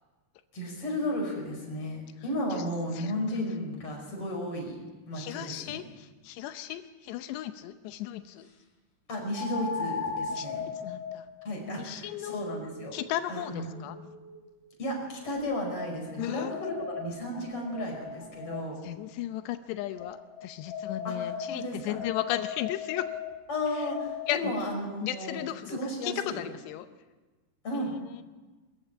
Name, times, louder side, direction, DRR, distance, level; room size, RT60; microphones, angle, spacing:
voice 1, 0.5-4.8 5.1-5.8 9.1-10.6 11.4-12.9 13.3-13.9 14.8-18.8 21.0-22.0 23.5-26.4 27.6-27.9, left 1 dB, 35° left, 1 dB, 6.1 m, -34 dB
voice 2, 5.1-8.5 10.3-10.5 10.8-11.2 11.8-12.4 12.9-14.0 16.2-16.5 18.8-23.1 24.3-24.5 25.0-26.9 27.7-28.2, left 13 dB, 90° left, 9 dB, 3.0 m, -35 dB
sound 1, 6.7-6.8 9.3-14.5 15.2-18.9 20.0-24.6, left 6 dB, 50° left, 4.6 m, -38 dB
24.0 x 14.0 x 8.9 m, 1.2 s
omnidirectional pair, 4.8 m